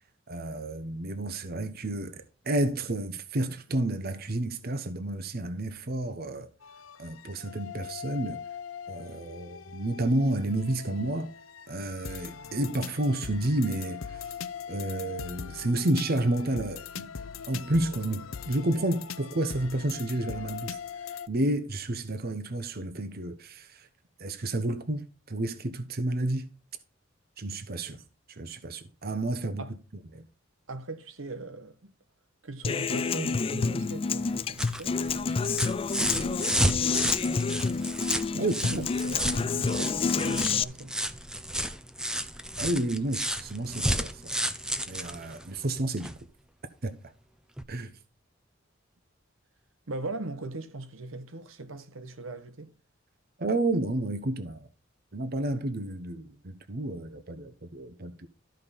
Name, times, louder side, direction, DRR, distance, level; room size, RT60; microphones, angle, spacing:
voice 1, 0.3-6.5 7.0-8.4 8.9-11.3 11.7-14.3 14.7-17.1 17.5-20.8 21.3-23.9 24.2-26.5 27.4-28.0 28.3-29.7 30.1-30.3 38.4-38.8 42.6-44.4 44.9-46.1 46.8-47.1 47.7-48.0 53.4-54.7 55.1-58.3, right 1 dB, 50° right, 0.9 m, -30 dB
sound 1, 6.6-21.3, left 7 dB, 90° left, 0.7 m, -41 dB
voice 2, 30.7-31.9 32.4-37.4 38.3-40.9 49.9-52.7, right 2 dB, 85° right, 1.3 m, -40 dB
Human voice / Acoustic guitar, 32.6-40.6, left 5 dB, 30° left, 0.3 m, -28 dB
sound 2, 34.2-46.2 47.6-47.7, right 1 dB, 5° right, 0.7 m, -32 dB
13.0 x 5.3 x 4.1 m
head